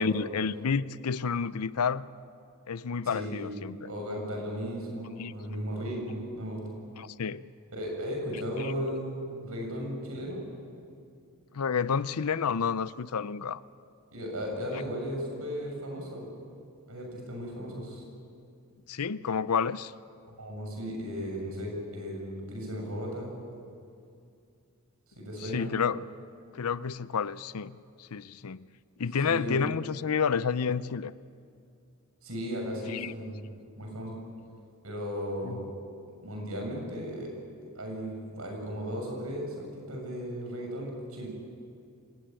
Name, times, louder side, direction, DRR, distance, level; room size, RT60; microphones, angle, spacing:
voice 1, 0.0-2.1 2.7-3.9 5.2-5.3 7.0-7.5 8.3-8.7 11.5-13.6 14.7-14.8 18.9-19.9 25.4-26.0 26.5-28.7 29.0-31.1 32.9-33.1 35.4-35.6, left 6 dB, 85° left, 17 dB, 0.6 m, -30 dB
voice 2, 3.1-3.5 3.9-6.7 7.7-10.4 14.1-16.3 16.9-18.0 20.4-23.3 25.2-25.7 29.3-29.6 32.2-33.4 33.8-34.2 34.8-35.8 36.2-37.3 37.8-41.3, equal, 75° right, 1 dB, 7.0 m, -35 dB
26.5 x 16.5 x 9.1 m, 2.4 s
head